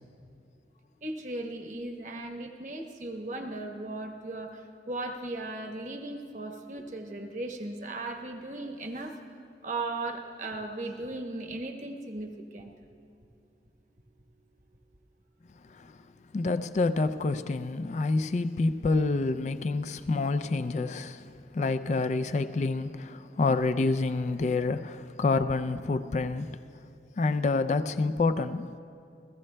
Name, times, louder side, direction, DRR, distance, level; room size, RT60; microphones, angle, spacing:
voice 1, 1.0-9.2 9.6-12.7, right 2 dB, 40° right, 1.0 m, -37 dB
voice 2, 16.3-21.2 21.5-26.6 27.2-28.8, left 3 dB, 40° left, 0.3 m, -28 dB
29.5 x 15.5 x 2.2 m
head